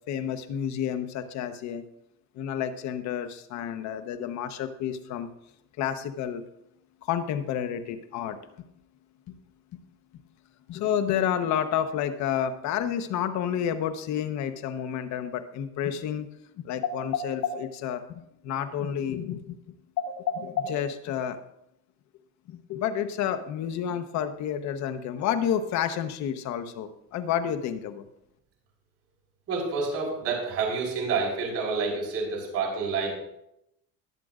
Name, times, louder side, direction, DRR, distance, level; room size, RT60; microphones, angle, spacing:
voice 1, 0.1-1.8 2.3-5.3 5.8-6.4 7.0-8.4 9.3-9.4 10.7-16.3 16.6-19.6 20.0-21.4 22.5-28.1, left 9 dB, 65° left, 9 dB, 1.1 m, -30 dB
voice 2, 29.5-33.2, right 4 dB, 50° right, -2 dB, 4.5 m, -28 dB
21.5 x 7.6 x 2.5 m, 0.81 s
cardioid pair, 120°, 31 cm